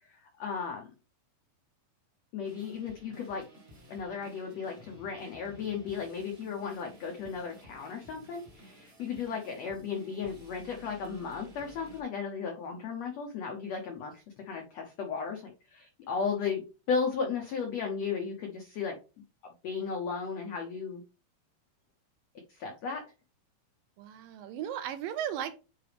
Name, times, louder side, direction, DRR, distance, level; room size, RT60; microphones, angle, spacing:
voice 1, 0.1-0.9 2.3-3.5 3.9-19.0 19.6-21.0 22.5-23.1, left 5 dB, 85° left, 2 dB, 1.4 m, -35 dB
sound 1, 2.4-12.0, equal, 45° right, 0.7 m, -54 dB
voice 2, 24.0-25.6, right 10 dB, 80° right, 11 dB, 2.1 m, -36 dB
8.0 x 4.8 x 3.4 m, 0.32 s
omnidirectional pair, 4.3 m